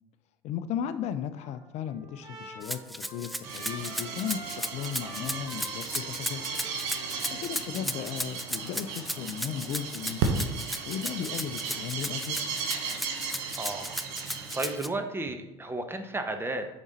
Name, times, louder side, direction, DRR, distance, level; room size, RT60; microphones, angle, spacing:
voice 1, 0.4-6.5 7.0-10.3 10.9-12.4, left 9 dB, 55° left, 11 dB, 0.5 m, -36 dB
Trumpet, 1.4-8.1, right 2 dB, 30° right, 2.7 m, -46 dB
Rattle (instrument), 2.6-14.9, equal, ahead, 0.4 m, -35 dB
sound 1, 3.4-14.8, right 5 dB, 65° right, 1.1 m, -35 dB
voice 2, 7.5-8.0 13.6-16.7, right 2 dB, 15° right, 6 dB, 1.0 m, -34 dB
7.1 x 5.2 x 4.1 m, 0.96 s
hypercardioid pair, 65°, 14 cm